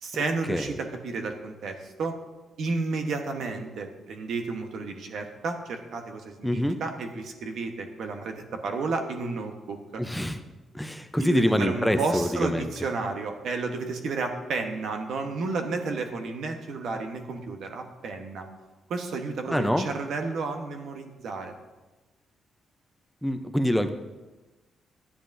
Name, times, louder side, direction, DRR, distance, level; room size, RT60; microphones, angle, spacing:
voice 1, 0.0-2.1 2.6-10.0 11.2-18.5 18.9-21.5, right 3 dB, 75° right, 4 dB, 1.1 m, -32 dB
voice 2, 6.4-6.8 10.0-10.4 10.7-12.7 19.5-19.8 23.2-23.9, equal, ahead, 7 dB, 0.6 m, -25 dB
13.0 x 9.9 x 2.7 m, 1.2 s
cardioid pair, 85°, 0 cm